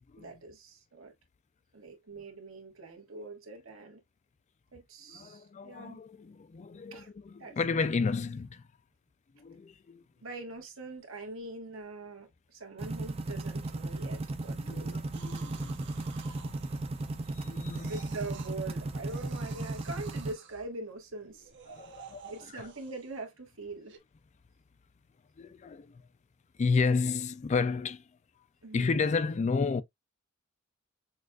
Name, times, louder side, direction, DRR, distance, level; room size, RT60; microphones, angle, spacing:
voice 1, 0.2-1.1 1.7-4.0 4.7-6.0 6.9-7.1 7.4-7.5 10.2-15.0 17.9-21.5 22.3-23.9 28.6-29.1, right 2 dB, 80° right, 1.5 m, -43 dB
voice 2, 5.1-8.6 9.4-10.0 14.6-15.9 17.3-17.9 21.7-22.7 25.4-26.0 26.6-28.0 28.7-29.8, left 4 dB, 35° left, 0.3 m, -32 dB
sound 1, 12.8-20.3, right 2 dB, 30° right, 0.5 m, -36 dB
sound 2, 15.1-17.3 17.7-18.6 19.0-20.7 21.3-23.2 23.9-24.0, right 7 dB, 60° right, 0.8 m, -52 dB
6.3 x 2.4 x 2.3 m
head